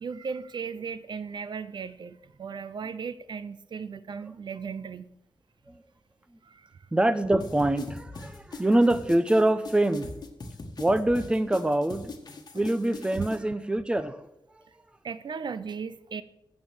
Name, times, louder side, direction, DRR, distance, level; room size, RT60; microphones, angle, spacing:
voice 1, 0.0-5.1 6.4-6.7 12.5-12.7 13.2-13.3 15.0-16.2, right 6 dB, 60° right, 14 dB, 0.5 m, -36 dB
voice 2, 6.9-10.1 10.8-12.1 12.5-14.2, right 1 dB, 10° right, 12 dB, 0.7 m, -24 dB
sound 1, 7.4-13.4, left 3 dB, 50° left, 1.6 m, -41 dB
15.5 x 7.3 x 6.2 m, 0.83 s
wide cardioid pair, 170°, 9 cm